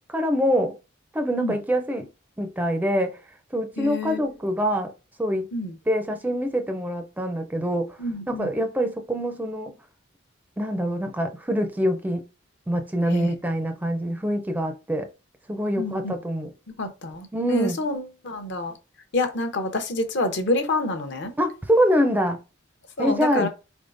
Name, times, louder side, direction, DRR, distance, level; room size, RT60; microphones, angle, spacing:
voice 1, 0.1-0.8 1.1-2.1 2.4-3.2 3.5-4.9 5.2-5.5 5.9-8.0 8.3-9.7 10.6-12.2 12.7-15.1 15.5-16.5 17.3-17.8 21.4-22.4 23.0-23.5, equal, 10° right, 0.4 m, -25 dB
voice 2, 3.8-4.2 5.5-5.7 8.0-8.5 13.1-13.3 15.8-16.1 16.8-18.8 19.1-21.3 23.0-23.5, left 2 dB, 60° left, 0.7 m, -27 dB
4.1 x 3.5 x 2.5 m
head